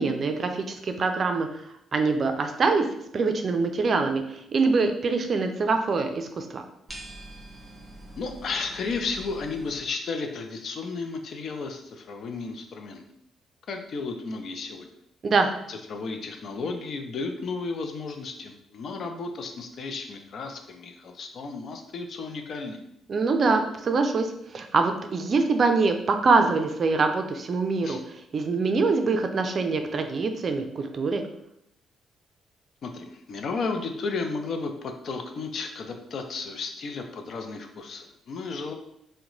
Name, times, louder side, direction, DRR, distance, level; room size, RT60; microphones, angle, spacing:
voice 1, 0.0-1.5 1.9-2.8 3.1-4.2 4.5-6.6 15.2-15.5 23.1-28.0 28.3-31.2, right 4 dB, 45° right, 6 dB, 0.4 m, -24 dB
sound 1, 6.9-9.8, right 1 dB, 10° right, 1.1 m, -44 dB
voice 2, 8.2-13.0 13.7-14.9 15.7-22.8 27.8-28.0 32.8-38.7, left 4 dB, 60° left, 5 dB, 0.5 m, -33 dB
2.9 x 2.1 x 3.9 m, 0.75 s
cardioid pair, 90°, 0 cm